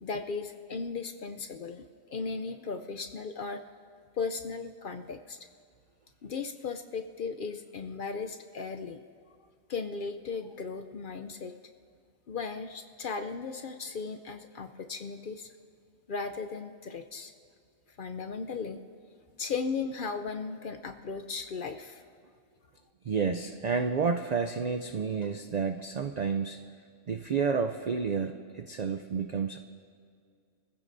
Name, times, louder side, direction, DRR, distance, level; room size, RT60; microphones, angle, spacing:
voice 1, 0.0-3.6 4.1-5.4 6.2-9.0 9.7-11.5 12.3-15.5 16.1-17.3 18.0-18.8 19.4-22.1, left 4 dB, 55° left, 7 dB, 0.6 m, -36 dB
voice 2, 23.0-26.6 27.1-29.6, right 5 dB, 60° right, 6 dB, 0.4 m, -30 dB
27.0 x 15.0 x 2.6 m, 2.2 s
omnidirectional pair, 1.3 m